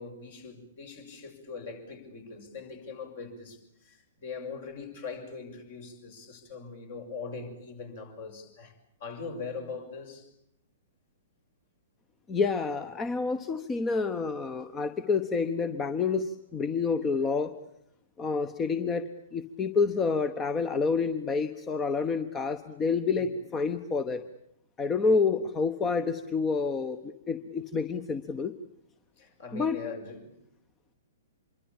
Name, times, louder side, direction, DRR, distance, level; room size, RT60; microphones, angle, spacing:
voice 1, 0.0-8.7 9.0-10.3 12.8-12.9 23.1-23.3 29.2-30.4, left 4 dB, 50° left, 6.6 m, -41 dB
voice 2, 12.3-17.5 18.2-24.2 24.8-28.5 29.5-29.8, left 4 dB, 20° left, 1.1 m, -28 dB
26.5 x 23.0 x 8.7 m
figure-of-eight pair, 110°, 0 cm